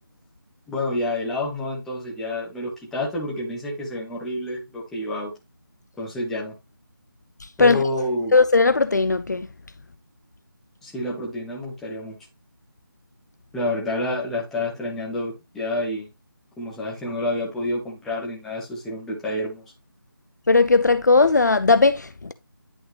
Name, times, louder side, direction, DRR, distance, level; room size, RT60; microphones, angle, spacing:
voice 1, 0.7-5.3 6.0-6.5 7.6-8.3 10.8-12.2 13.5-16.1 16.6-19.6, left 1 dB, 5° left, 1.1 m, -28 dB
voice 2, 8.3-9.5 20.5-22.3, left 3 dB, 50° left, 0.5 m, -17 dB
10.5 x 3.9 x 3.1 m
figure-of-eight pair, 160°, 12 cm